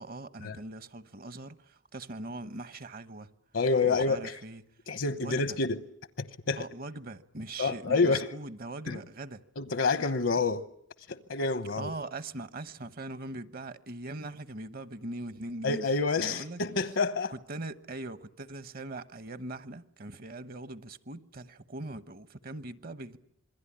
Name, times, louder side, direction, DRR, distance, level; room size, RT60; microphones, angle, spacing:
voice 1, 0.0-3.3 3.8-4.6 5.2-5.5 6.6-9.4 11.8-15.8 16.2-16.6 17.3-23.2, right 2 dB, 50° right, 1.1 m, -41 dB
voice 2, 3.5-4.4 4.9-5.8 6.2-6.6 7.6-8.3 8.9-9.0 9.6-10.6 11.1-11.9 15.6-17.3, left 4 dB, 70° left, 1.0 m, -28 dB
27.0 x 22.0 x 10.0 m
head